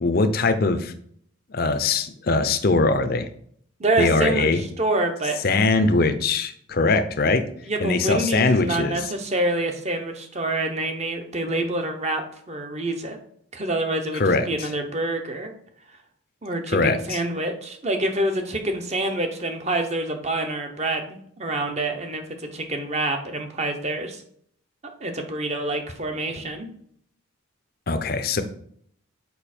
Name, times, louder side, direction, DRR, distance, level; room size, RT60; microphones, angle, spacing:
voice 1, 0.0-0.9 1.5-3.3 4.0-4.6 5.4-7.4 7.8-9.0 14.1-14.5 16.7-17.2 27.9-28.4, left 3 dB, 45° left, 9 dB, 0.6 m, -21 dB
voice 2, 3.8-5.4 7.6-13.2 13.5-15.5 16.4-24.2 25.0-26.7, right 2 dB, 35° right, 5 dB, 0.9 m, -27 dB
7.0 x 5.3 x 4.3 m, 0.65 s
head